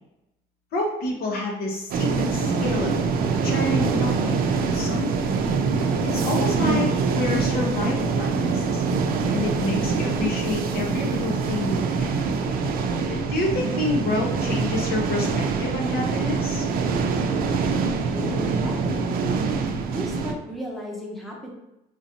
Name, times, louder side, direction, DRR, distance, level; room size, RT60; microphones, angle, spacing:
voice 1, 0.7-3.0 3.4-5.3 6.0-8.8 9.3-12.1 13.1-16.7, left 2 dB, 65° left, -1 dB, 1.0 m, -28 dB
sound 1, 1.9-20.3, right 4 dB, 60° right, 0.5 m, -24 dB
voice 2, 18.1-19.4 19.9-21.5, equal, ahead, -3 dB, 0.9 m, -35 dB
5.0 x 2.6 x 2.8 m, 0.88 s
cardioid pair, 110°, 17 cm